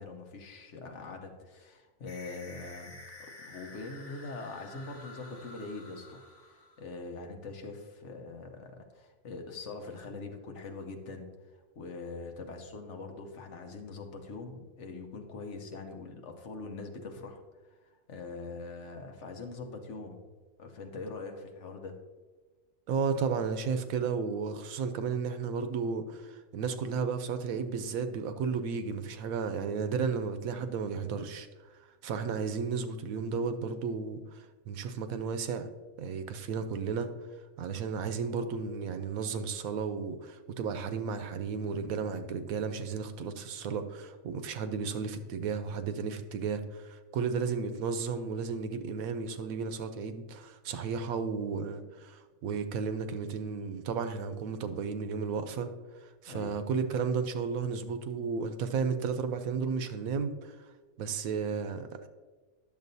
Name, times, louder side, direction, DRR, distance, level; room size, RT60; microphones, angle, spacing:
voice 1, 0.0-3.0 3.4-20.2 20.6-22.0 37.7-37.8 56.3-56.6, left 3 dB, 60° left, 4 dB, 1.1 m, -43 dB
sound 1, 2.1-7.0, left 2 dB, 80° left, 1.7 m, -50 dB
voice 2, 22.9-31.5 32.0-35.7 36.0-37.1 37.6-55.7 56.0-60.6 61.0-62.1, right 5 dB, 85° right, 9 dB, 1.1 m, -33 dB
10.5 x 7.0 x 2.7 m, 1.3 s
omnidirectional pair, 1.4 m